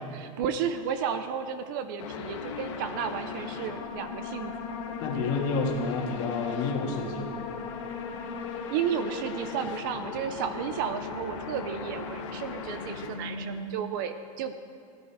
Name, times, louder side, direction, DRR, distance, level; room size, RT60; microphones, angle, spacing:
voice 1, 0.1-5.0 8.7-14.5, right 8 dB, 35° right, 10 dB, 0.5 m, -33 dB
sound 1, 2.0-13.7, left 5 dB, 60° left, 1.6 m, -37 dB
voice 2, 5.0-7.3, left 4 dB, 40° left, 0 dB, 1.8 m, -29 dB
16.5 x 11.0 x 4.8 m, 2.4 s
supercardioid pair, 180°, 17 cm